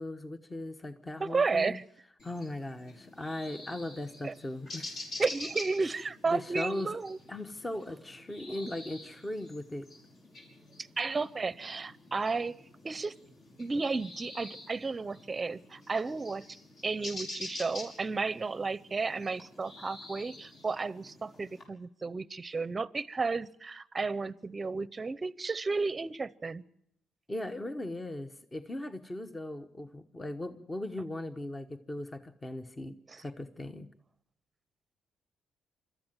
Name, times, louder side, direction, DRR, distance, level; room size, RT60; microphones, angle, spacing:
voice 1, 0.0-1.8 2.2-5.0 6.3-6.9 7.3-9.8 27.3-33.9, left 1 dB, 20° left, 8 dB, 1.1 m, -38 dB
voice 2, 1.2-1.8 4.2-4.3 5.2-7.2 11.0-12.6 12.8-13.2 13.6-16.4 16.8-26.6 33.1-33.2, right 4 dB, 30° right, 19 dB, 0.7 m, -33 dB
sound 1, 2.2-21.6, left 2 dB, 60° left, 6.3 m, -47 dB
25.0 x 13.5 x 9.1 m, 0.76 s
cardioid pair, 90°, 0 cm